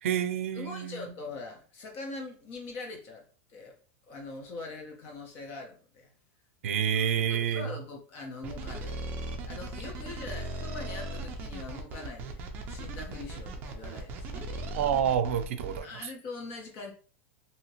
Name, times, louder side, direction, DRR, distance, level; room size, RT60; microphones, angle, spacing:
voice 1, 0.0-1.1 6.6-7.7 14.8-15.9, right 9 dB, 85° right, 0.5 m, -28 dB
voice 2, 0.5-3.7 4.1-6.2 7.0-9.0 9.2-12.4 12.7-14.5 15.8-16.9, left 3 dB, 35° left, 0.8 m, -42 dB
sound 1, 8.4-15.8, right 2 dB, 25° right, 0.5 m, -38 dB
2.8 x 2.8 x 2.8 m
supercardioid pair, 170°, 7 cm